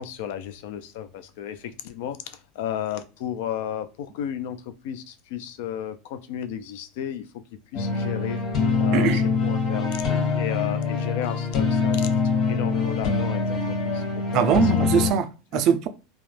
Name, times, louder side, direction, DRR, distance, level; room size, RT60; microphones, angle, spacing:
voice 1, 0.0-4.6 4.8-7.2 7.7-8.4 8.8-9.9 10.4-12.2 12.5-14.0 14.3-14.9 15.5-15.6, left 10 dB, 70° left, 0.3 m, -33 dB
sound 1, 7.7-15.1, left 5 dB, 50° left, 1.3 m, -24 dB
voice 2, 14.3-15.9, right 8 dB, 50° right, 0.3 m, -22 dB
2.2 x 2.0 x 3.1 m
supercardioid pair, 115°, 0 cm